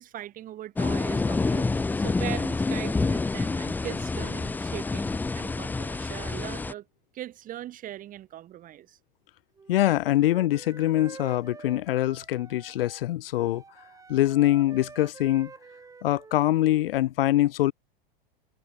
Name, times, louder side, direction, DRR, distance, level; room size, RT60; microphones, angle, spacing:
voice 1, 0.0-6.9 7.1-9.0, right 12 dB, 30° right, 4.4 m, -40 dB
sound 1, 0.8-6.7, left 3 dB, 5° left, 0.8 m, -28 dB
Wind instrument woodwind instrument, 9.6-13.0 13.3-16.9, right 4 dB, 10° right, 5.7 m, -48 dB
voice 2, 9.7-13.6 14.1-15.5 16.0-17.7, left 14 dB, 75° left, 4.0 m, -24 dB
supercardioid pair, 150°, 29 cm